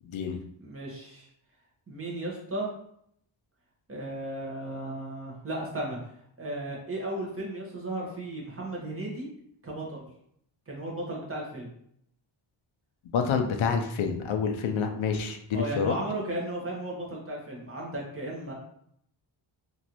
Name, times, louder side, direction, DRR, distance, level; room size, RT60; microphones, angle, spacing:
voice 1, 0.0-0.4 13.1-16.0, left 6 dB, 75° left, 4 dB, 0.6 m, -28 dB
voice 2, 0.6-1.3 1.9-2.7 3.9-6.0 6.4-9.3 9.6-10.1 10.7-11.7 15.5-18.5, right 1 dB, 25° right, -3 dB, 1.0 m, -35 dB
3.0 x 2.5 x 2.9 m, 0.71 s
cardioid pair, 85°, 48 cm